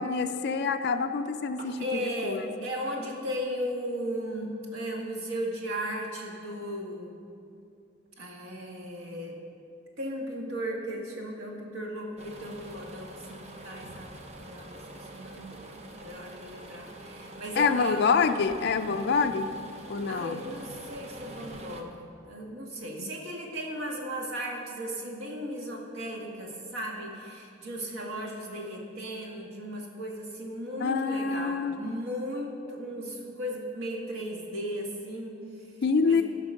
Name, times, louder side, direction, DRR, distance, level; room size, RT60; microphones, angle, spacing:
voice 1, 0.0-2.5 17.6-19.5 19.9-20.4 30.8-32.0 35.8-36.2, left 5 dB, 55° left, 6 dB, 0.4 m, -26 dB
voice 2, 1.8-7.2 8.2-9.4 10.0-15.6 16.0-18.1 20.1-35.7 36.0-36.2, equal, 90° right, 0 dB, 1.7 m, -36 dB
sound 1, 12.2-21.8, right 1 dB, 35° right, 0.8 m, -45 dB
13.5 x 5.2 x 6.4 m, 2.5 s
head